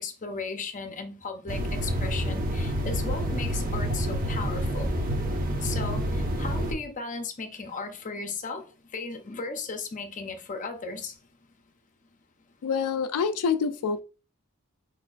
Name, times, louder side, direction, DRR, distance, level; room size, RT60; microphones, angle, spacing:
voice 1, 0.0-4.9 5.6-11.2, left 4 dB, 35° left, 0.7 m, -36 dB
sound 1, 1.5-6.7, equal, 40° right, 0.9 m, -28 dB
voice 2, 12.6-14.0, left 6 dB, 80° left, 0.4 m, -26 dB
4.5 x 4.4 x 2.4 m
head